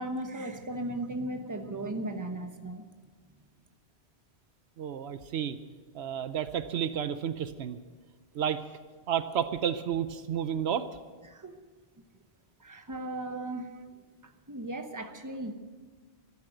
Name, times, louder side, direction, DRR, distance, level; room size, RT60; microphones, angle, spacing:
voice 1, 0.0-2.8 11.3-11.6 12.6-13.7 14.2-15.5, right 1 dB, 20° right, 6 dB, 1.1 m, -36 dB
voice 2, 4.8-5.6 5.9-7.8 8.3-8.6 9.1-10.9, right 9 dB, 75° right, 12 dB, 0.9 m, -31 dB
13.0 x 11.5 x 7.8 m, 1.4 s
omnidirectional pair, 1.1 m